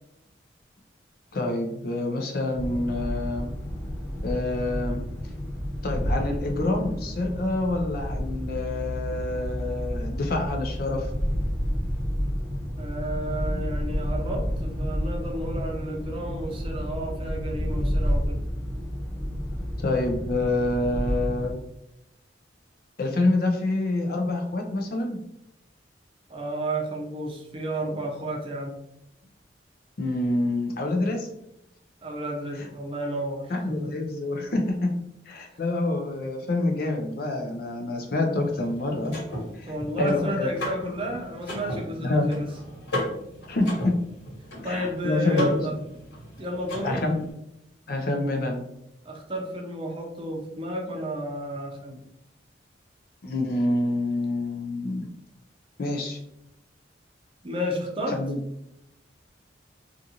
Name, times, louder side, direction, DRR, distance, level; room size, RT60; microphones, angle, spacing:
voice 1, 1.3-3.5 4.2-5.0 5.8-11.1 19.8-21.6 23.0-25.2 30.0-31.3 33.5-34.9 35.3-39.2 39.5-39.7 40.0-40.5 42.0-42.3 43.5-43.9 44.6-45.5 46.8-47.2 47.9-48.6 53.2-55.1 55.8-56.2 58.1-58.4, left 2 dB, 55° left, 3 dB, 0.5 m, -27 dB
sound 1, 2.5-21.5, equal, 5° left, 1.3 m, -30 dB
voice 2, 12.8-18.4 26.3-28.8 32.0-33.9 35.5-35.6 39.7-42.5 44.6-45.7 46.4-47.0 49.0-52.0 57.4-58.2, right 1 dB, 30° right, -1 dB, 0.6 m, -32 dB
Car / Mechanisms, 38.4-47.3, left 1 dB, 85° left, 1.4 m, -36 dB
2.5 x 2.5 x 2.8 m, 0.83 s
head